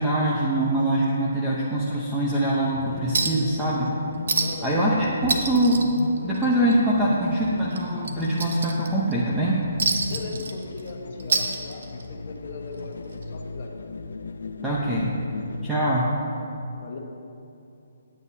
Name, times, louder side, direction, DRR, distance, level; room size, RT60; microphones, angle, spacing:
voice 1, 0.0-3.9 4.6-5.8 6.2-9.6 14.6-15.1 15.6-16.1, right 1 dB, 5° right, -7 dB, 0.8 m, -23 dB
sound 1, 2.6-15.7, left 4 dB, 85° left, 0.6 m, -36 dB
Chink clink, 3.1-3.5 3.8-3.9 4.3-4.7 5.0-6.7 7.1-7.2 7.7-9.1 9.8-10.9 11.2-12.1 13.2-13.3, right 4 dB, 65° right, 1.1 m, -27 dB
voice 2, 4.4-4.8 10.0-13.9 16.8-17.0, left 3 dB, 45° left, 1 dB, 1.2 m, -38 dB
17.5 x 9.1 x 2.8 m, 2.7 s
hypercardioid pair, 175°, 0 cm